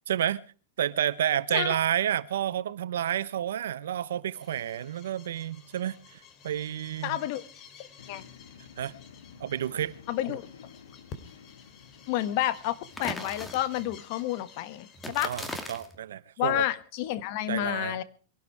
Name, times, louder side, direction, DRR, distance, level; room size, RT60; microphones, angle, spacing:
voice 1, 0.1-0.4 0.8-7.2 8.8-8.9 9.4-9.9 10.3-10.4 15.2-16.6 17.5-18.0, right 10 dB, 80° right, 0.9 m, -30 dB
sound 1, 4.3-15.7, left 6 dB, 35° left, 2.7 m, -52 dB
voice 2, 7.0-7.4 8.1-8.2 10.1-10.5 12.1-15.3 16.4-18.0, left 13 dB, 50° left, 1.3 m, -30 dB
sound 2, 8.0-14.4, left 7 dB, 85° left, 1.7 m, -52 dB
sound 3, 12.9-13.9 14.9-16.0, left 1 dB, 10° left, 2.2 m, -38 dB
22.5 x 12.0 x 4.7 m
hypercardioid pair, 135°, 0 cm